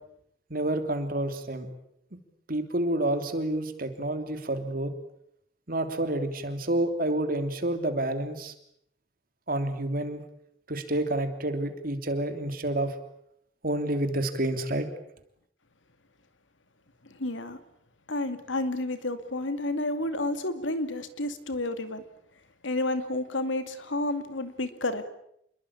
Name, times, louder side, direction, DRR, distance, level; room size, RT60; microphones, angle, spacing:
voice 1, 0.5-1.7 2.5-4.9 5.7-8.5 9.5-10.2 10.7-13.0 13.6-14.9, right 1 dB, 50° right, 8 dB, 3.2 m, -29 dB
voice 2, 17.2-17.6 18.1-22.0 22.6-25.1, left 2 dB, 85° left, 10 dB, 2.6 m, -30 dB
28.0 x 21.5 x 8.6 m, 0.74 s
head